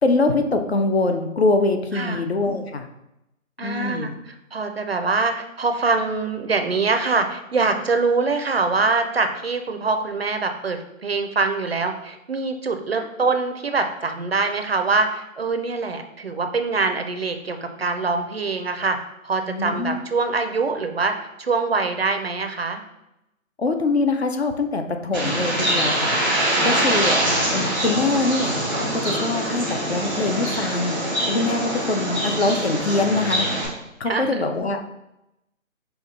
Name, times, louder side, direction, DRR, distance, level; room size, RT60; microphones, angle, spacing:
voice 1, 0.0-2.9 3.6-4.1 13.0-13.1 19.5-20.0 23.6-28.6 28.9-33.5 34.0-34.9, left 3 dB, 50° left, 6 dB, 0.5 m, -23 dB
voice 2, 3.6-19.0 19.2-22.8 26.5-26.9 29.4-29.6 32.0-32.2 34.1-34.4, right 4 dB, 50° right, 7 dB, 0.5 m, -24 dB
Bird, 25.1-33.6, right 1 dB, 10° left, 0.7 m, -24 dB
5.5 x 2.3 x 4.1 m, 0.88 s
figure-of-eight pair, 155°, 41 cm